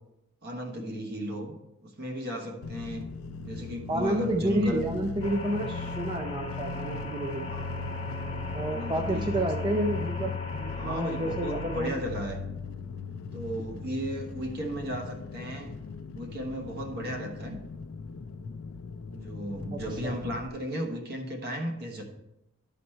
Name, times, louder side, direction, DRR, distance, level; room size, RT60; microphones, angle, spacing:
voice 1, 0.4-1.6 1.8-3.1 3.4-4.8 7.5-8.0 8.7-9.5 10.8-12.4 13.3-15.7 16.1-17.6 19.1-22.0, equal, 50° right, 3 dB, 1.2 m, -35 dB
sound 1, 2.6-20.5, left 4 dB, 80° left, 0.4 m, -38 dB
voice 2, 3.9-7.5 8.5-12.0 19.7-20.1, right 1 dB, 20° right, 1 dB, 0.5 m, -30 dB
sound 2, 5.2-11.9, left 1 dB, 25° left, 0.8 m, -40 dB
11.0 x 4.1 x 4.4 m, 0.90 s
head